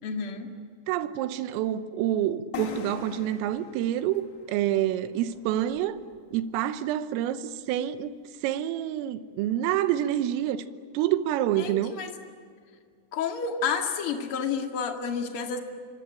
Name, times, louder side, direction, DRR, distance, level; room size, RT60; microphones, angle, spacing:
voice 1, 0.0-0.5 11.6-12.1 13.1-15.6, left 6 dB, 45° left, 1.7 m, -30 dB
voice 2, 0.9-6.0 6.3-8.2 8.4-10.7 11.0-11.9, right 12 dB, 85° right, 3.7 m, -27 dB
sound 1, 2.5-6.2, left 8 dB, 70° left, 1.6 m, -42 dB
26.0 x 24.0 x 9.1 m
omnidirectional pair, 5.9 m